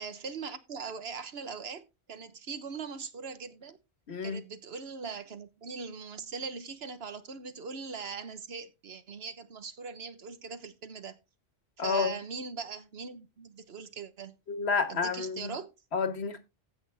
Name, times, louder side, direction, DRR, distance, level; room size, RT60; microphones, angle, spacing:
voice 1, 0.0-3.8 4.2-11.2 11.8-14.4 14.9-15.7, right 5 dB, 75° right, 1.3 m, -41 dB
voice 2, 4.1-4.4 11.8-12.1 14.5-15.5 15.9-16.4, left 5 dB, 90° left, 1.6 m, -30 dB
15.0 x 6.3 x 3.4 m
omnidirectional pair, 1.1 m